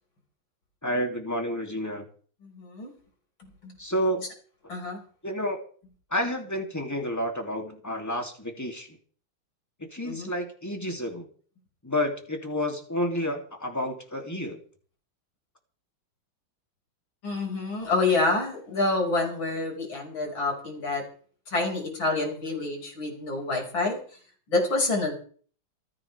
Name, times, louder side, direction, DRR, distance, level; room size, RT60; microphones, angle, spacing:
voice 1, 0.8-2.1 3.8-4.3 5.2-5.6 6.1-9.0 9.8-11.3 11.8-14.6, equal, 10° left, 2 dB, 2.7 m, -30 dB
voice 2, 2.4-2.9 3.6-3.7 4.7-5.0 10.1-10.3 17.2-21.0 21.5-24.0 24.5-25.1, left 3 dB, 65° left, 1 dB, 6.5 m, -27 dB
28.5 x 9.7 x 3.5 m, 0.43 s
omnidirectional pair, 2.3 m